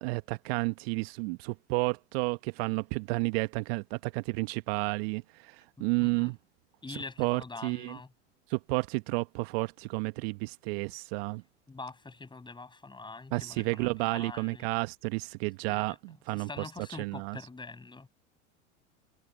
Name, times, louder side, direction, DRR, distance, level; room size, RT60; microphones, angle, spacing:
voice 1, 0.0-6.4 6.9-8.0 8.5-11.4 13.3-16.5 17.0-17.4, right 29 dB, 55° right, 1.3 m, -31 dB
voice 2, 5.8-6.3 6.8-8.1 11.7-14.7 15.7-15.9 16.3-18.1, left 3 dB, 10° left, 6.2 m, -44 dB
hypercardioid pair, 85°, 36 cm